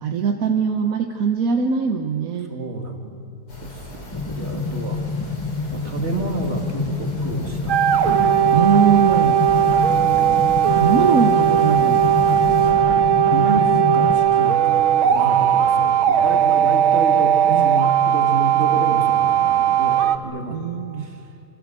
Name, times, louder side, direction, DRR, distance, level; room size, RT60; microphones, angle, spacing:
voice 1, 0.0-2.5 8.5-9.4 10.7-12.0 17.5-17.9 20.5-21.1, right 6 dB, 50° right, 4 dB, 1.2 m, -21 dB
voice 2, 2.5-3.2 3.6-5.0 5.7-7.9 8.5-8.7 9.9-10.5 12.5-20.6 21.0-21.2, right 2 dB, 30° right, 3 dB, 2.4 m, -30 dB
sound 1, 3.5-12.7, left 1 dB, 80° left, 5.2 m, -38 dB
sound 2, 4.1-14.1, left 4 dB, 40° left, 0.3 m, -28 dB
sound 3, 7.7-20.2, right 9 dB, 70° right, 1.8 m, -17 dB
26.0 x 25.5 x 7.6 m, 2.7 s
omnidirectional pair, 2.4 m